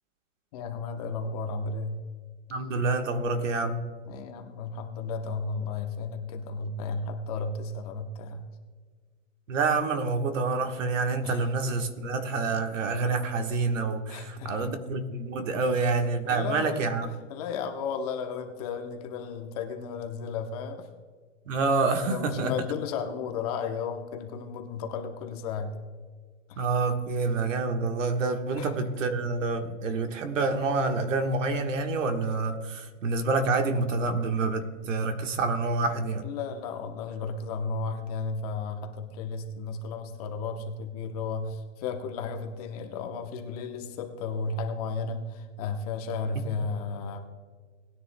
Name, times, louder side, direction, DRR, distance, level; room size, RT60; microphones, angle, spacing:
voice 1, 0.5-2.0 4.1-8.4 11.2-11.5 14.1-14.7 15.5-15.7 16.2-20.9 22.1-25.8 26.5-26.6 28.6-28.7 36.2-47.2, left 4 dB, 30° left, 4 dB, 0.9 m, -34 dB
voice 2, 2.5-3.8 9.5-17.1 21.5-22.5 26.6-36.2, right 3 dB, 80° right, 6 dB, 1.4 m, -27 dB
19.0 x 9.9 x 2.2 m, 1.5 s
hypercardioid pair, 165°, 37 cm